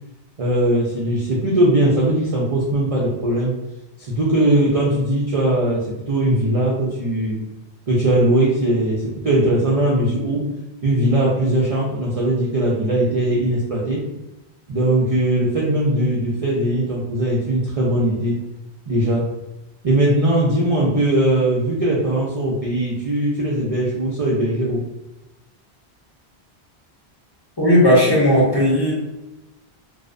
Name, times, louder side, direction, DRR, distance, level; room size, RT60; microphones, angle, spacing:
voice 1, 0.4-3.5 4.0-7.4 7.9-10.5 10.8-14.0 14.7-18.4 18.9-19.2 19.8-24.8, right 1 dB, 50° right, -6 dB, 0.4 m, -19 dB
voice 2, 27.6-28.9, left 1 dB, 30° left, -7 dB, 0.6 m, -15 dB
2.6 x 2.1 x 2.4 m, 0.99 s
omnidirectional pair, 1.1 m